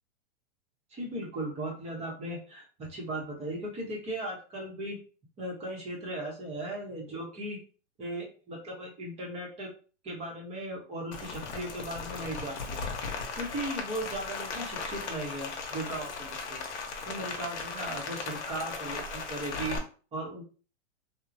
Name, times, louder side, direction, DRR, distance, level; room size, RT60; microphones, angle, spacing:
voice 1, 0.9-5.0 5.4-7.6 8.0-9.7 10.0-12.9 13.3-16.6 17.1-19.8 20.1-20.4, right 1 dB, 20° right, -2 dB, 0.7 m, -37 dB
Rain, 11.1-19.8, left 4 dB, 75° left, 0.8 m, -37 dB
2.9 x 2.0 x 2.5 m, 0.38 s
hypercardioid pair, 140°, 36 cm